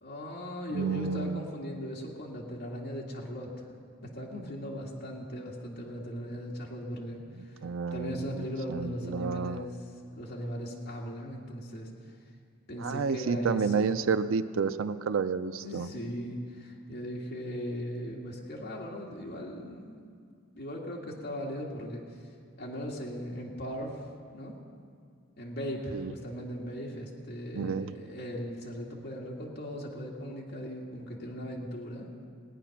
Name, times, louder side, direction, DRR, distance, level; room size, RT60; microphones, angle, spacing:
voice 1, 0.0-3.7 4.0-7.7 7.9-9.8 10.1-12.1 12.7-14.0 15.6-20.0 20.6-22.0 22.6-24.0 24.3-24.6 25.4-32.2, equal, 55° left, -2 dB, 1.8 m, -38 dB
voice 2, 0.7-1.4 7.6-9.6 12.8-15.9 25.9-26.1 27.5-27.9, right 5 dB, 70° right, 12 dB, 0.4 m, -30 dB
19.0 x 9.1 x 5.8 m, 2.2 s
head